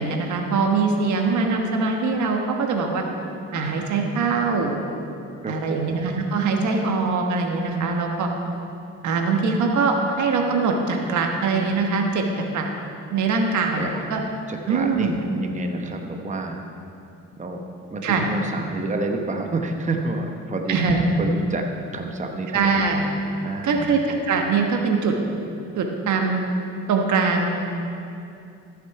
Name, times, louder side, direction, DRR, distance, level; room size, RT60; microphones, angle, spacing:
voice 1, 0.0-3.0 3.5-4.8 5.5-8.3 9.0-12.2 12.5-12.7 13.1-14.2 14.7-15.2 18.0-18.3 20.7-21.1 22.5-23.0 23.6-25.1 25.8-26.4 26.9-27.5, right 4 dB, 75° right, 2 dB, 1.3 m, -22 dB
voice 2, 5.4-5.9 13.7-14.0 14.5-16.6 17.4-17.6 17.9-20.8 21.2-21.6 21.9-22.7 23.4-23.8, right 2 dB, 25° right, 3 dB, 1.0 m, -29 dB
14.0 x 6.7 x 4.8 m, 2.6 s
cardioid pair, 90°, 30 cm